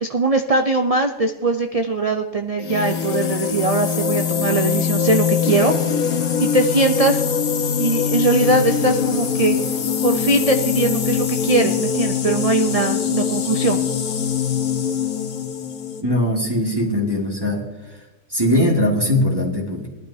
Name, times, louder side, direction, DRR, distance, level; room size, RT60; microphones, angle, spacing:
voice 1, 0.0-5.7 6.4-7.2 7.8-9.6 10.0-13.8, right 3 dB, 70° right, 5 dB, 0.3 m, -20 dB
sound 1, 2.6-16.0, left 7 dB, 75° left, 1.5 m, -22 dB
voice 2, 16.0-17.6 18.3-19.9, left 1 dB, 15° right, -3 dB, 1.8 m, -20 dB
20.0 x 12.0 x 2.7 m, 1.1 s
omnidirectional pair, 1.6 m